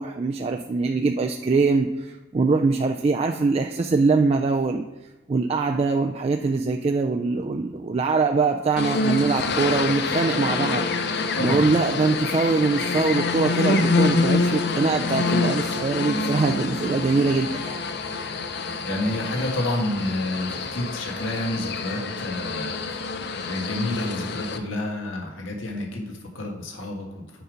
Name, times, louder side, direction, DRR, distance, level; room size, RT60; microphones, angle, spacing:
voice 1, 0.0-4.8 5.3-17.8, right 3 dB, 30° right, 4 dB, 0.3 m, -23 dB
sound 1, 8.8-24.6, left 3 dB, 60° left, 0.6 m, -26 dB
voice 2, 11.3-11.7 18.8-22.9 23.4-27.2, left 1 dB, 90° left, 0 dB, 1.6 m, -29 dB
6.8 x 5.3 x 5.0 m, 1.1 s
head